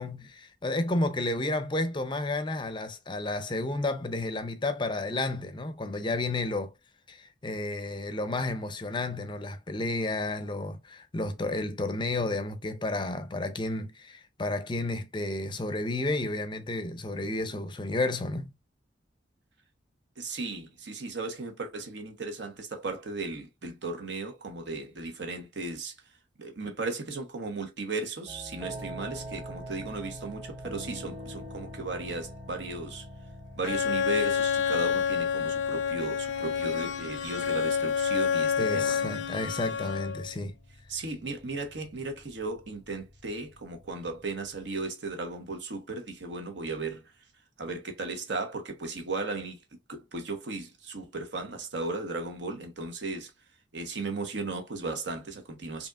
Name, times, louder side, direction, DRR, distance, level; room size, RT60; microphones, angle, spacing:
voice 1, 0.0-6.7 7.1-18.5 38.6-40.6, left 2 dB, 25° left, 0.5 m, -31 dB
voice 2, 20.2-26.0 26.4-33.1 33.6-39.1 40.9-47.0 47.6-49.6 49.9-53.3 53.7-55.9, right 3 dB, 70° right, 1.0 m, -36 dB
sound 1, 28.3-44.7, equal, 25° right, 1.2 m, -45 dB
Bowed string instrument, 33.6-40.3, left 7 dB, 80° left, 0.6 m, -28 dB
5.0 x 2.9 x 2.4 m
head